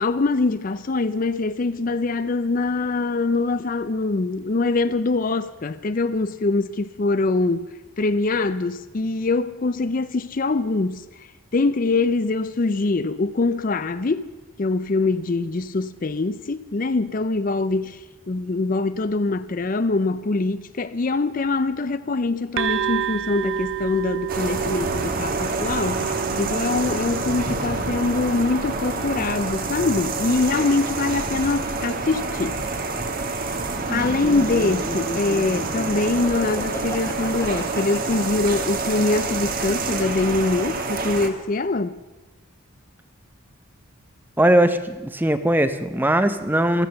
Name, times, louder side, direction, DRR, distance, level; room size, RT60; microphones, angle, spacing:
voice 1, 0.0-7.7 8.0-11.0 11.5-14.3 14.6-32.6 33.5-33.6 33.9-41.9, left 3 dB, 40° left, 0.4 m, -23 dB
sound 1, 22.6-30.1, right 9 dB, 65° right, 0.6 m, -31 dB
sound 2, 24.3-41.3, right 3 dB, 40° right, 1.3 m, -27 dB
Laughter, 33.9-39.8, left 1 dB, 15° left, 1.6 m, -34 dB
voice 2, 44.4-46.9, right 1 dB, 10° right, 0.6 m, -19 dB
15.0 x 13.5 x 6.9 m
head